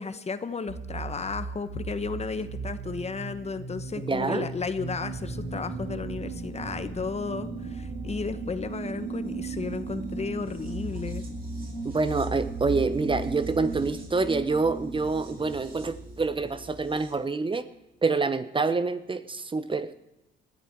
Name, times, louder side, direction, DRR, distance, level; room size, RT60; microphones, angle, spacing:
voice 1, 0.0-11.2, left 4 dB, 35° left, 12 dB, 1.1 m, -34 dB
sound 1, 0.7-16.2, right 4 dB, 75° right, 3.5 m, -39 dB
voice 2, 4.0-4.5 11.8-17.7 18.0-20.0, right 4 dB, 25° right, 13 dB, 0.9 m, -27 dB
sound 2, 5.1-17.1, right 2 dB, 50° right, 5.6 m, -39 dB
20.0 x 13.5 x 4.6 m, 0.93 s
cardioid pair, 90°, 20 cm